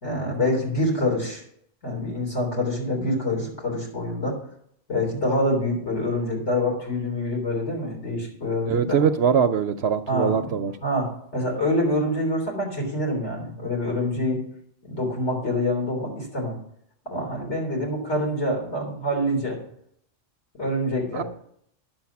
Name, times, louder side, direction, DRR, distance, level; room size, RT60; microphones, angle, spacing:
voice 1, 0.0-1.4 1.8-4.4 4.9-9.1 10.1-14.4 14.8-16.6 17.0-19.6 20.6-21.2, left 1 dB, 65° left, -2 dB, 4.2 m, -26 dB
voice 2, 8.7-10.7 21.1-21.2, right 7 dB, 65° right, 10 dB, 0.7 m, -22 dB
10.5 x 7.6 x 5.8 m, 0.69 s
omnidirectional pair, 1.3 m